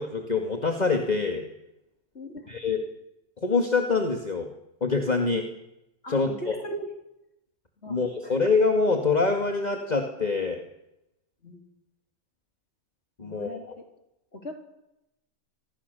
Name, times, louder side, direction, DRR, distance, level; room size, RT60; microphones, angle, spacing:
voice 1, 0.0-1.4 2.5-2.8 3.4-4.5 4.8-5.5 6.1-6.5 7.9-10.6 13.2-13.6, left 4 dB, 30° left, 4 dB, 2.3 m, -25 dB
voice 2, 2.1-2.5 6.0-6.9 7.8-8.4 11.4-11.6 13.2-13.9 14.3-14.5, equal, 45° left, 3 dB, 4.3 m, -39 dB
28.5 x 25.0 x 7.0 m, 0.88 s
omnidirectional pair, 1.5 m